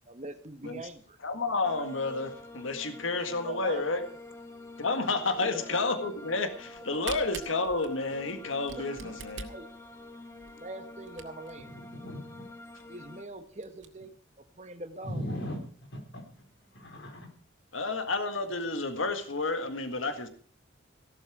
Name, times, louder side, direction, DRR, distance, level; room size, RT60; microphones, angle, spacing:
voice 1, 0.0-1.2 3.4-4.0 5.4-5.8 8.8-9.2 9.5-9.7 10.6-11.7 12.9-15.2, right 2 dB, 35° right, 9 dB, 1.4 m, -43 dB
voice 2, 1.2-4.0 4.8-9.5 17.7-20.3, left 3 dB, 90° left, 8 dB, 1.7 m, -30 dB
sound 1, 1.6-13.2, left 2 dB, 15° left, 1.4 m, -48 dB
Camera, 6.7-11.6 12.2-12.3 12.5-12.6 13.0-13.1 13.5-13.9, right 6 dB, 75° right, 2.1 m, -43 dB
voice 3, 11.7-12.4 15.0-16.3 16.7-17.3, equal, 70° left, 3 dB, 4.4 m, -38 dB
16.0 x 12.5 x 4.9 m, 0.44 s
head